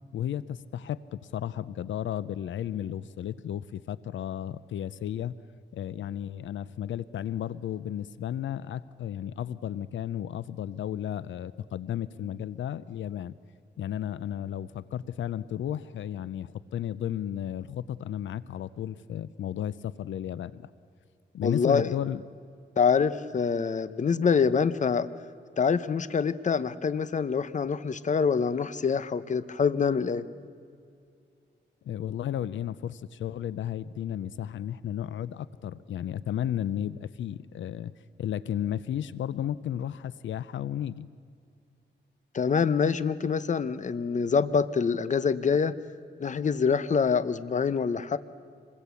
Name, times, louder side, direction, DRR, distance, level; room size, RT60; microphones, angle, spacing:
voice 1, 0.1-5.3 5.7-13.4 13.8-20.7 21.3-22.3 31.8-37.9 38.2-41.1, left 10 dB, 85° left, 17 dB, 0.6 m, -33 dB
voice 2, 21.4-21.9 22.8-25.1 25.6-30.2 42.3-45.7 46.2-48.2, left 6 dB, 40° left, 15 dB, 0.8 m, -25 dB
26.0 x 21.0 x 8.3 m, 2.3 s
cardioid pair, 105°, 19 cm